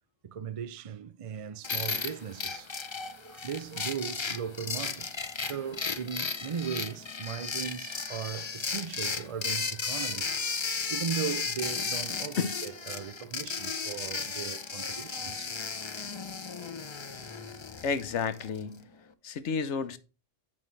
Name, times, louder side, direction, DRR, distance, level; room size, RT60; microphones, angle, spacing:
voice 1, 0.2-2.7 3.2-10.4 10.9-15.8 16.2-16.3, right 7 dB, 55° right, 0.4 m, -38 dB
sound 1, 1.6-18.6, left 5 dB, 35° left, 0.4 m, -35 dB
voice 2, 17.8-18.9 19.2-20.0, left 5 dB, 70° left, 1.1 m, -31 dB
10.5 x 5.3 x 3.2 m
omnidirectional pair, 1.3 m